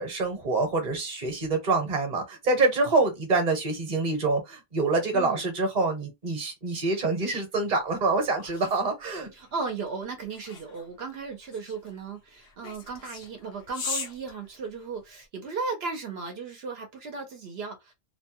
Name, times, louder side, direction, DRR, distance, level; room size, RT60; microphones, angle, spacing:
voice 1, 0.0-9.3, right 3 dB, 45° right, 1.0 m, -26 dB
voice 2, 5.1-5.5 9.3-17.9, right 4 dB, 75° right, 0.9 m, -36 dB
sound 1, 7.8-15.2, left 5 dB, 85° left, 0.9 m, -41 dB
2.7 x 2.1 x 2.8 m
omnidirectional pair, 1.0 m